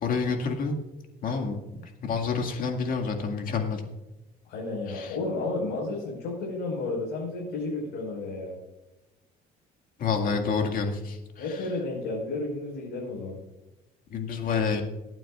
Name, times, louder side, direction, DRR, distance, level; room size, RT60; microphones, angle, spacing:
voice 1, 0.0-0.8 1.2-3.8 4.9-5.1 10.0-11.6 14.1-14.8, left 5 dB, 55° left, 3 dB, 2.1 m, -28 dB
voice 2, 4.5-8.6 11.4-13.4, left 2 dB, 85° left, -4 dB, 4.9 m, -32 dB
23.5 x 9.1 x 2.5 m, 1.0 s
cardioid pair, 110°, 17 cm